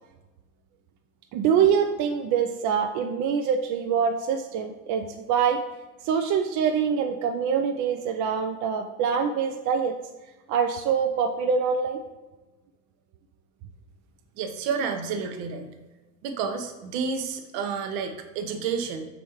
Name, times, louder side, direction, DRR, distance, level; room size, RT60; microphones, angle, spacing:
voice 1, 1.3-5.6 6.0-9.9 10.5-12.0, right 7 dB, 45° right, 5 dB, 0.4 m, -24 dB
voice 2, 14.4-15.7 16.2-19.1, right 5 dB, 65° right, 6 dB, 0.8 m, -30 dB
5.0 x 3.5 x 3.0 m, 1.1 s
hypercardioid pair, 75°, 43 cm